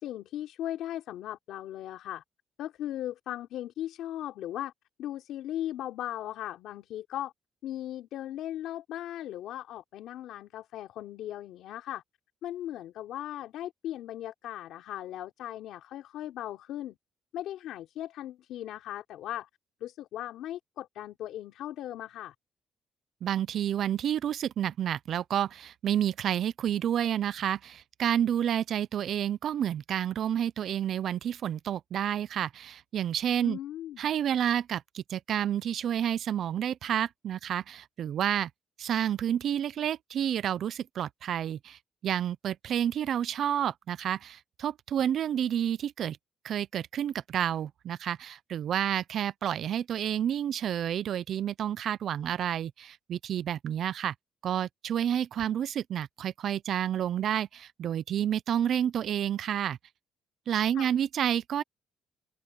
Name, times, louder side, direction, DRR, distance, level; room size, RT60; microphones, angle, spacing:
voice 1, 0.0-2.2 2.6-4.7 5.0-7.3 7.6-12.0 12.4-17.0 17.3-19.5 19.8-22.3 33.4-34.0 60.8-60.9, left 12 dB, 80° left, 3.7 m, -38 dB
voice 2, 23.2-33.6 34.0-38.5 38.8-46.2 46.4-54.1 54.4-59.8 60.5-61.6, right 10 dB, 65° right, 0.5 m, -30 dB
open air
cardioid pair, 100°, 0 cm